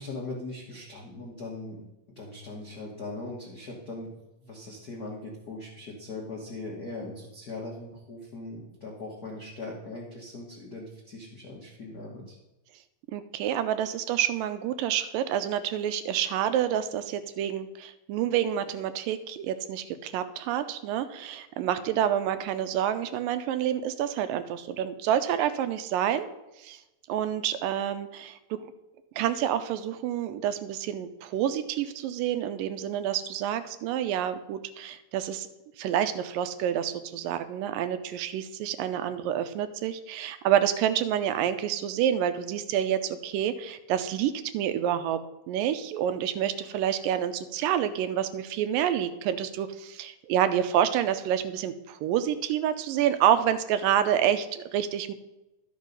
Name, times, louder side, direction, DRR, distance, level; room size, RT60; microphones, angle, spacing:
voice 1, 0.0-1.8 2.2-4.1 4.4-12.4, left 2 dB, 80° left, -2 dB, 0.8 m, -40 dB
voice 2, 13.1-26.3 26.6-26.8 27.1-28.7 29.2-35.5 35.8-45.2 45.5-55.1, right 10 dB, 85° right, 11 dB, 2.3 m, -28 dB
12.0 x 5.5 x 5.2 m, 0.98 s
omnidirectional pair, 3.9 m